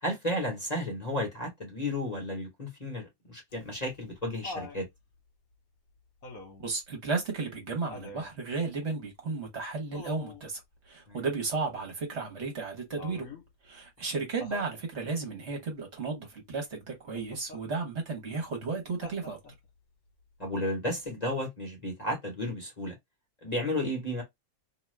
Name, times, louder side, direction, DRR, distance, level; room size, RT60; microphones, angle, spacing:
voice 1, 0.0-4.9 11.1-11.2 20.4-23.0 23.4-24.2, left 1 dB, 30° left, 1.0 m, -33 dB
Laughter, 3.5-4.8 6.2-6.7 7.9-8.3 9.9-10.5 13.0-13.5 14.4-14.8 17.1-17.6 19.0-19.7 21.1-21.2, left 2 dB, 65° left, 1.3 m, -44 dB
voice 2, 6.6-10.6 10.9-13.3 13.6-19.4, right 4 dB, 50° right, 1.3 m, -34 dB
2.8 x 2.3 x 3.1 m
omnidirectional pair, 1.5 m